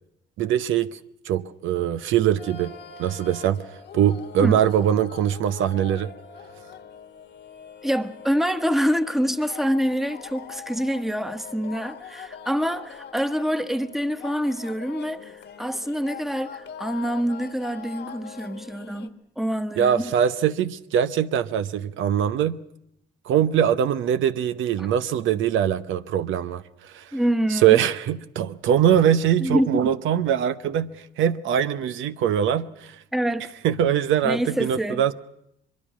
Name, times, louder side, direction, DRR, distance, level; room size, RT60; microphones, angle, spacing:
voice 1, 0.4-1.0 1.3-2.7 3.0-3.6 3.9-6.1 19.8-22.6 23.3-26.6 26.9-27.0 27.5-33.0 33.6-35.1, right 9 dB, 80° right, 0.9 m, -22 dB
sound 1, 2.4-19.1, left 7 dB, 60° left, 1.6 m, -42 dB
voice 2, 7.8-20.1 27.1-27.8 29.4-29.8 33.1-33.5 34.2-35.0, equal, ahead, 1.2 m, -26 dB
23.0 x 22.5 x 6.2 m
cardioid pair, 90°, 20 cm